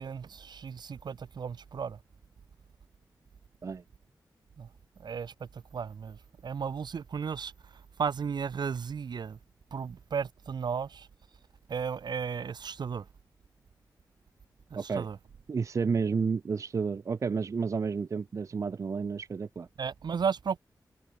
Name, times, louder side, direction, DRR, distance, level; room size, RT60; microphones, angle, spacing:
voice 1, 0.0-2.0 4.6-4.7 5.0-9.4 9.7-11.1 11.7-13.1 14.7-15.2 19.8-20.6, right 6 dB, 70° right, 0.8 m, -34 dB
voice 2, 14.8-15.1 15.5-19.7, right 5 dB, 45° right, 0.4 m, -31 dB
wide cardioid pair, 140°, 8 cm